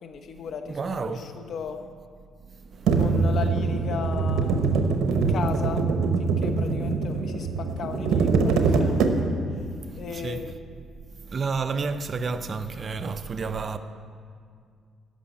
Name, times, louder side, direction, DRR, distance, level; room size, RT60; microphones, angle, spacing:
voice 1, 0.0-1.8 3.0-4.5 5.1-5.8 6.2-9.0 10.0-10.5, left 6 dB, 65° left, 1.0 m, -36 dB
voice 2, 0.7-1.3 2.5-3.0 5.2-5.3 9.8-10.4 11.2-13.8, right 4 dB, 40° right, 0.6 m, -31 dB
sound 1, 2.9-9.6, right 4 dB, 85° right, 0.9 m, -23 dB
11.5 x 6.5 x 8.5 m
cardioid pair, 90°, 0 cm